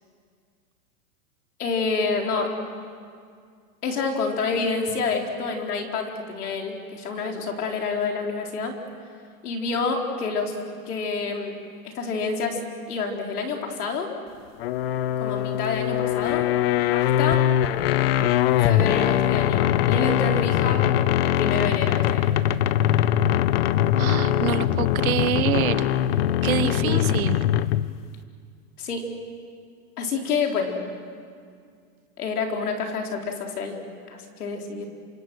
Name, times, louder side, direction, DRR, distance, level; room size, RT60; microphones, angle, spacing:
voice 1, 1.6-2.6 3.8-8.8 9.4-10.5 10.9-11.6 11.8-12.6 12.9-14.1 15.2-16.5 16.9-17.4 18.6-20.9 21.2-22.4 26.6-27.0 28.8-29.1 30.0-30.8 32.2-33.8 34.1-34.8, left 4 dB, 85° left, 2 dB, 4.5 m, -28 dB
sound 1, 14.6-28.0, left 12 dB, 45° left, 0.6 m, -22 dB
voice 2, 24.0-25.9 26.4-27.4, right 11 dB, 70° right, 13 dB, 1.3 m, -26 dB
28.0 x 26.5 x 6.3 m, 2.2 s
supercardioid pair, 155°, 44 cm